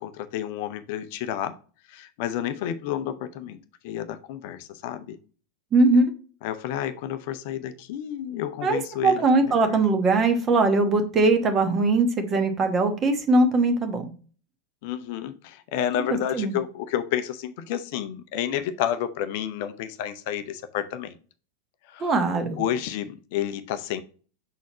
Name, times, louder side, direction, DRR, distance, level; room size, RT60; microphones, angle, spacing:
voice 1, 0.0-1.5 1.9-5.2 6.4-9.8 14.8-21.2 21.9-24.0, left 10 dB, 50° left, 0.5 m, -30 dB
voice 2, 5.7-6.1 8.6-14.1 16.3-16.6 22.0-22.6, right 3 dB, 25° right, 1.1 m, -21 dB
5.9 x 4.2 x 4.1 m
figure-of-eight pair, 90°, 0 cm